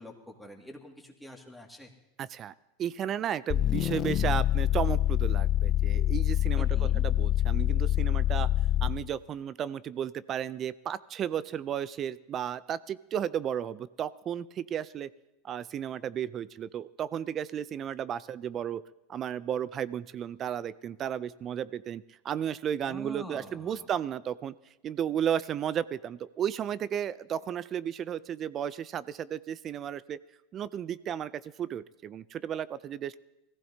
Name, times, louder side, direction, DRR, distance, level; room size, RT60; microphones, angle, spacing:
voice 1, 0.0-1.9 6.6-7.0 22.8-23.9, equal, ahead, 1 dB, 2.2 m, -46 dB
voice 2, 2.2-2.5 2.8-8.5 8.8-15.1 15.4-18.8 19.1-24.5 24.8-30.2 30.5-33.2, right 9 dB, 35° right, 18 dB, 0.4 m, -34 dB
sound 1, 3.5-9.1, left 13 dB, 40° left, 0.4 m, -26 dB
20.5 x 15.0 x 2.8 m, 0.93 s
hypercardioid pair, 95°, 0 cm